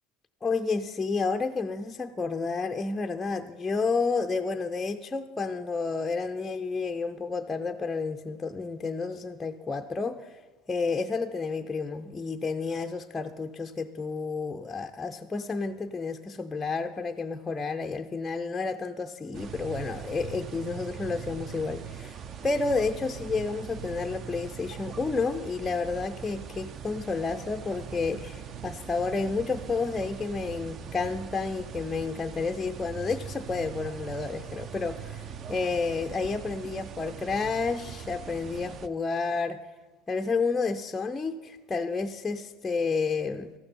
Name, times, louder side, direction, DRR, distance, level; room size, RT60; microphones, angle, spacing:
voice 1, 0.4-10.4 10.7-39.6 40.1-43.5, left 4 dB, 15° left, 5 dB, 0.4 m, -30 dB
sound 1, 19.3-38.9, right 8 dB, 40° right, 0.5 m, -41 dB
14.0 x 12.0 x 4.2 m, 1.3 s
cardioid pair, 135°, 0 cm